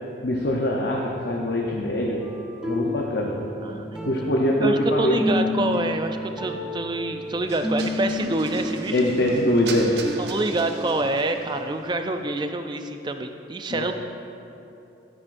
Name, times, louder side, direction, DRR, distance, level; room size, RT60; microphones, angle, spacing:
voice 1, 0.2-2.2 2.7-3.4 4.1-5.2 8.9-9.9 13.7-13.9, left 1 dB, 55° left, -1 dB, 0.8 m, -23 dB
sound 1, 2.2-11.9 12.3-12.4, left 1 dB, 5° right, 0.9 m, -32 dB
voice 2, 4.6-9.0 10.2-13.9, right 2 dB, 25° right, 7 dB, 0.4 m, -27 dB
sound 2, 7.5-11.4, right 2 dB, 60° right, 0.7 m, -36 dB
13.5 x 9.7 x 2.6 m, 2.8 s
head